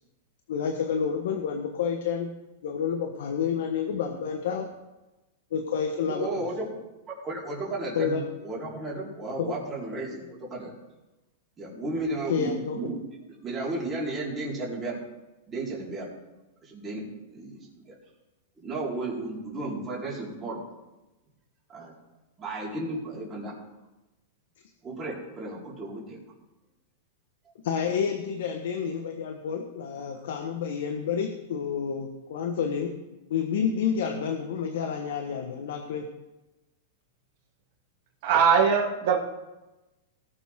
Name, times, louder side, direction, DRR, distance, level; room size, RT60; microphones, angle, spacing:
voice 1, 0.5-2.3 2.6-4.7 5.5-6.4 7.9-8.2 9.4-9.5 11.7-11.8 12.3-12.8 27.6-32.9 33.3-36.1, left 7 dB, 75° left, 5 dB, 1.2 m, -29 dB
voice 2, 6.1-6.7 7.2-10.7 11.6-13.0 13.4-15.0 15.5-16.1 16.6-17.0 17.3-17.6 17.9-18.0 18.6-20.6 21.7-21.9 22.4-23.5 24.8-26.2 30.1-30.2, right 2 dB, 20° right, -6 dB, 3.9 m, -33 dB
voice 3, 38.2-39.2, right 6 dB, 55° right, -2 dB, 2.4 m, -21 dB
18.5 x 7.1 x 3.7 m, 1.1 s
hypercardioid pair, 140°, 0 cm